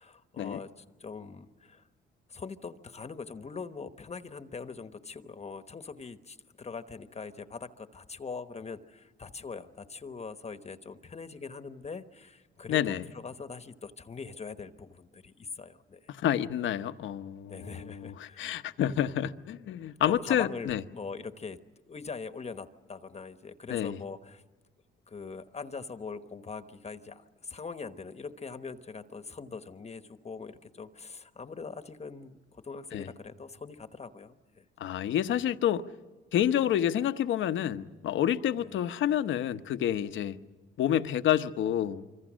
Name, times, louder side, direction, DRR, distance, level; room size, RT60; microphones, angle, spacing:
voice 1, 0.0-1.8 2.3-16.1 17.5-18.6 20.0-21.6 21.9-24.4 25.1-34.6 38.6-38.8, left 5 dB, 35° left, 1.2 m, -42 dB
voice 2, 12.7-13.0 16.1-20.8 23.7-24.0 32.9-33.1 34.8-35.8 36.3-40.4 40.8-42.0, left 10 dB, 75° left, 1.0 m, -29 dB
25.5 x 25.0 x 6.3 m
cardioid pair, 90°, 20 cm